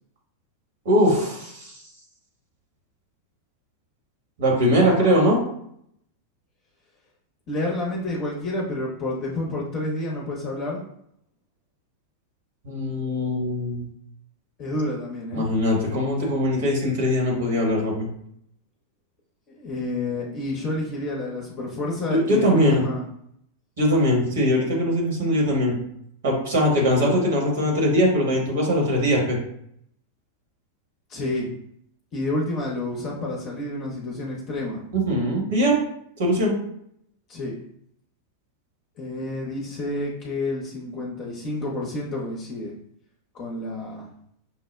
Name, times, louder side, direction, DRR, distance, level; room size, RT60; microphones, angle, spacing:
voice 1, 0.8-1.8 4.4-5.4 12.6-13.9 15.3-18.1 22.1-22.8 23.8-25.8 26.2-29.4 34.9-35.8 36.2-36.6, equal, 60° right, -2 dB, 1.3 m, -21 dB
voice 2, 7.5-10.8 14.6-15.5 19.5-23.0 31.1-31.5 32.1-34.8 37.3-37.5 39.0-42.7 43.3-44.1, left 1 dB, 35° left, -2 dB, 0.7 m, -29 dB
5.5 x 2.1 x 2.2 m, 0.72 s
figure-of-eight pair, 90°, 0 cm